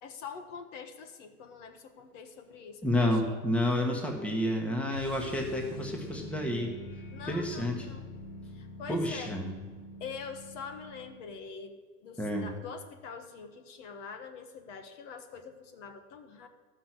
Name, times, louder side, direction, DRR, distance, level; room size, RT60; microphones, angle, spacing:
voice 1, 0.0-3.4 7.1-8.1 8.5-9.4 10.0-16.5, left 5 dB, 50° left, 6 dB, 1.4 m, -44 dB
voice 2, 2.8-6.7 7.3-7.8 8.9-9.5 12.2-12.5, left 1 dB, 5° left, 1 dB, 1.2 m, -30 dB
sound 1, 4.9-11.3, left 1 dB, 65° left, 3.2 m, -45 dB
13.0 x 6.1 x 8.0 m, 1.4 s
hypercardioid pair, 135°, 46 cm